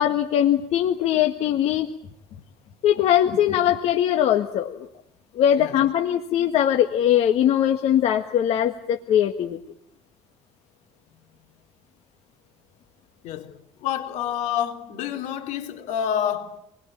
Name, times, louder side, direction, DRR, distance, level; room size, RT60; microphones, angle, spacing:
voice 1, 0.0-1.9 2.8-4.9 5.3-9.6, left 10 dB, 55° left, 1.7 m, -21 dB
voice 2, 13.2-16.6, left 9 dB, 75° left, 3.4 m, -28 dB
28.5 x 21.0 x 8.8 m
cardioid pair, 170°, 12 cm